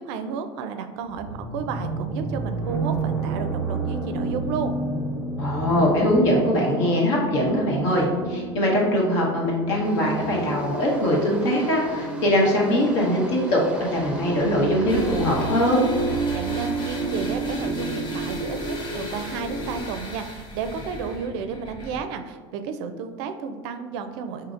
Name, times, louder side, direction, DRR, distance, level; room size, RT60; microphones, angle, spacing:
voice 1, 0.0-4.7 16.3-24.5, right 6 dB, 70° right, 8 dB, 0.4 m, -32 dB
sound 1, 1.1-19.8, right 2 dB, 10° left, 1.1 m, -30 dB
voice 2, 5.4-15.8, equal, 70° left, -2 dB, 1.1 m, -22 dB
sound 2, 9.8-17.1, right 1 dB, 5° right, 0.6 m, -41 dB
sound 3, 14.9-22.0, left 1 dB, 35° left, 0.7 m, -38 dB
4.9 x 2.7 x 2.5 m, 1.5 s
hypercardioid pair, 95°, 15 cm